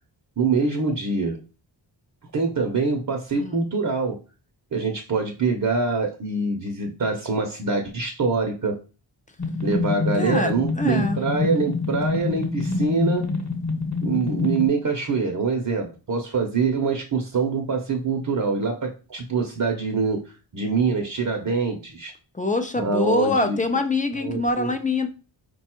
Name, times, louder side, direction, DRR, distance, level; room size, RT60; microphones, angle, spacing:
voice 1, 0.4-1.4 2.3-4.2 4.7-8.8 9.6-13.3 14.0-20.2 20.5-22.1 22.8-23.6 24.2-24.7, right 4 dB, 45° right, 2 dB, 0.7 m, -24 dB
sound 1, 9.4-14.7, left 4 dB, 35° left, 1.1 m, -26 dB
voice 2, 10.2-11.2 22.3-25.1, left 2 dB, 15° left, 7 dB, 0.5 m, -24 dB
5.1 x 2.3 x 4.3 m, 0.34 s
wide cardioid pair, 155°, 46 cm